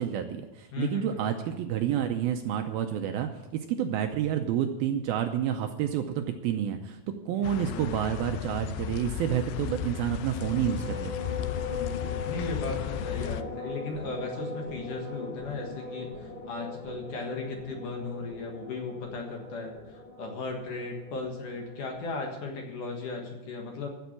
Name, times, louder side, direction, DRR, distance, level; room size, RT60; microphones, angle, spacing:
voice 1, 0.0-7.0 7.3-11.2, right 10 dB, 75° right, 6 dB, 2.3 m, -29 dB
voice 2, 0.7-1.3 7.3-7.8 11.8-23.9, left 3 dB, 60° left, 2 dB, 2.8 m, -36 dB
sound 1, 7.4-13.4, left 11 dB, 80° left, 2.2 m, -35 dB
sound 2, 10.2-22.0, left 4 dB, 30° left, 2.9 m, -40 dB
14.5 x 7.1 x 8.3 m, 1.0 s
omnidirectional pair, 4.8 m